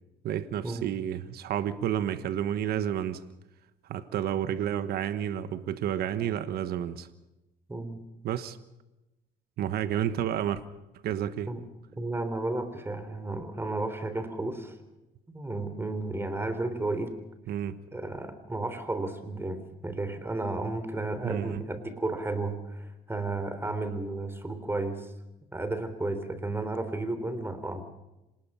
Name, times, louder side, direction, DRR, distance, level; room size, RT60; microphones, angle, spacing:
voice 1, 0.2-3.2 3.9-7.1 8.2-8.6 9.6-10.6 11.0-11.5 17.5-17.8 21.2-21.6, right 10 dB, 65° right, 12 dB, 1.3 m, -30 dB
voice 2, 7.7-8.0 11.5-11.6 12.0-14.8 15.3-17.2 17.9-25.1 25.5-27.8, right 2 dB, 15° right, 10 dB, 3.5 m, -33 dB
26.5 x 19.5 x 5.6 m, 0.98 s
cardioid pair, 110°, 17 cm